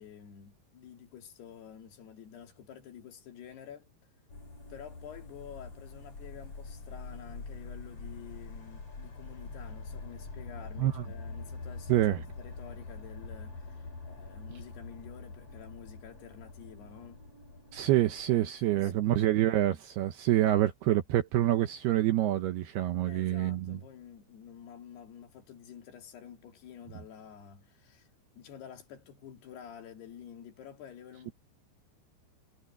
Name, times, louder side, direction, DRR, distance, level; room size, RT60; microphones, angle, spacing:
voice 1, 0.0-3.9 4.7-12.0 12.4-17.2 18.3-19.7 23.0-28.1 28.4-31.3, left 8 dB, 60° left, 4.3 m, -49 dB
sound 1, 4.3-18.4, left 3 dB, 30° left, 5.3 m, -45 dB
voice 2, 11.9-12.2 17.7-23.8, right 14 dB, 75° right, 2.5 m, -27 dB
omnidirectional pair, 5.5 m